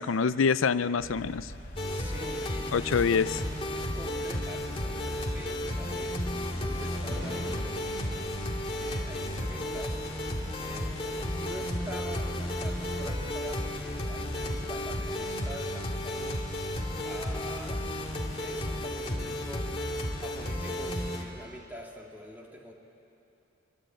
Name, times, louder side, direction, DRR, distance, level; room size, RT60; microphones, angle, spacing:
voice 1, 0.0-1.5 2.7-3.3, left 5 dB, 85° left, 15 dB, 0.5 m, -25 dB
sound 1, 1.0-18.1, equal, 65° left, 4.2 m, -45 dB
sound 2, 1.7-21.2, left 1 dB, 30° left, 2.3 m, -33 dB
voice 2, 1.8-10.0 10.6-16.5 17.0-17.9 18.3-19.9 20.2-22.7, equal, 10° right, 0 dB, 2.6 m, -45 dB
Thunder, 7.0-21.0, equal, 25° right, 7.0 m, -51 dB
24.0 x 24.0 x 8.9 m, 2.9 s
head